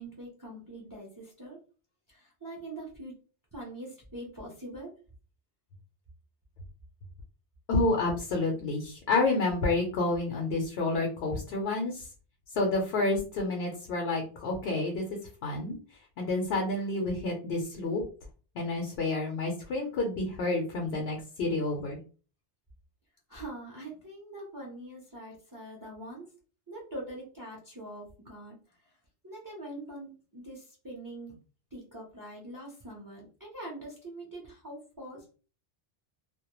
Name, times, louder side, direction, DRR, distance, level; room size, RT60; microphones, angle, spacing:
voice 1, 0.0-1.6 2.1-3.1 3.5-4.9 23.3-26.3 26.7-28.6 29.2-31.4 31.7-35.2, right 1 dB, 25° right, -3 dB, 0.5 m, -43 dB
voice 2, 7.7-12.1 12.6-15.0 15.4-15.8 16.2-18.0 18.6-22.0, left 2 dB, 70° left, 1 dB, 0.8 m, -29 dB
2.2 x 2.1 x 2.9 m, 0.38 s
omnidirectional pair, 1.1 m